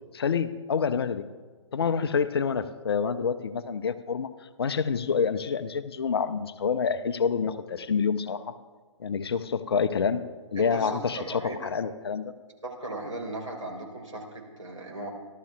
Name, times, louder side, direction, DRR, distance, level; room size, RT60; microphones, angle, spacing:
voice 1, 0.1-1.3 1.7-4.3 4.6-8.6 9.0-10.2 10.5-12.3, left 6 dB, 50° left, 11 dB, 0.7 m, -27 dB
voice 2, 10.6-11.7 12.6-15.1, right 2 dB, 80° right, -1 dB, 3.9 m, -37 dB
27.5 x 12.5 x 2.4 m, 1.4 s
figure-of-eight pair, 135°, 17 cm